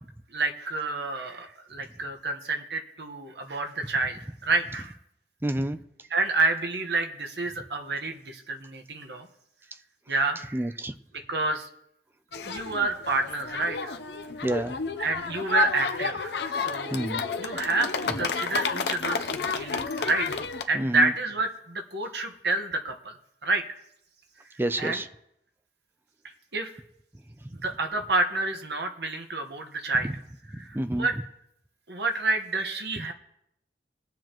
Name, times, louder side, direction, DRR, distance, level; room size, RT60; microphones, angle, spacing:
voice 1, 0.3-4.9 6.1-9.3 10.1-10.7 11.3-11.7 12.4-13.9 15.0-17.0 17.4-20.3 20.7-23.1 23.4-23.6 24.8-25.0 26.5-26.7 27.6-30.1 30.5-31.2 31.9-33.1, right 3 dB, 70° right, 5 dB, 1.3 m, -29 dB
voice 2, 5.4-5.8 10.5-10.9 14.4-14.7 16.9-17.2 20.7-21.1 24.6-25.1 30.7-31.1, right 1 dB, 15° right, 11 dB, 0.5 m, -28 dB
sound 1, 12.3-20.6, left 5 dB, 70° left, 0.7 m, -31 dB
21.0 x 7.4 x 3.1 m, 0.79 s
head